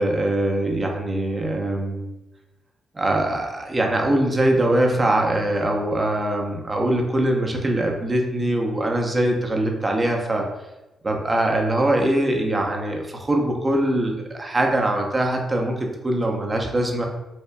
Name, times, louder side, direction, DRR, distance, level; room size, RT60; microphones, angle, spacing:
voice 1, 0.0-2.1 2.9-10.5 11.0-17.1, right 1 dB, 30° right, 1 dB, 0.7 m, -22 dB
4.5 x 2.2 x 2.2 m, 1.0 s
supercardioid pair, 50°, 0 cm